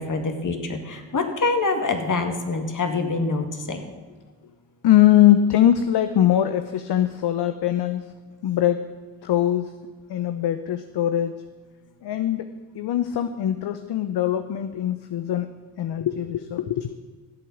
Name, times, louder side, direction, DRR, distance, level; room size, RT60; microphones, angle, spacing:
voice 1, 0.0-3.8, left 3 dB, 45° left, 6 dB, 2.3 m, -25 dB
voice 2, 4.8-8.1 8.4-8.9 9.2-9.7 10.1-11.4 12.0-15.5 15.8-16.9, left 11 dB, 60° left, 11 dB, 0.8 m, -21 dB
13.5 x 8.5 x 7.3 m, 1.4 s
hypercardioid pair, 50°, 45 cm